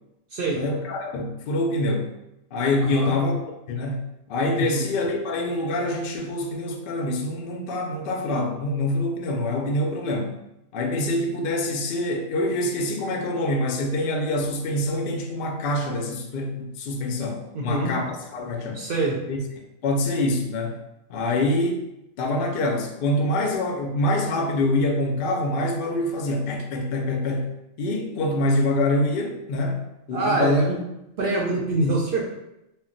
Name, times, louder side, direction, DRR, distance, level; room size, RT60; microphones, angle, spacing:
voice 1, 0.5-2.1 2.5-10.3 10.7-18.9 19.3-19.4 19.8-20.8 21.1-21.8 22.2-27.5 27.8-29.8 30.1-30.7, left 1 dB, 65° left, 2 dB, 0.5 m, -25 dB
voice 2, 2.8-3.1 4.6-4.9 17.5-17.9 18.7-19.1 30.1-30.8 31.2-32.2, right 2 dB, 60° right, -3 dB, 0.6 m, -25 dB
2.2 x 2.2 x 3.7 m, 0.87 s
omnidirectional pair, 1.4 m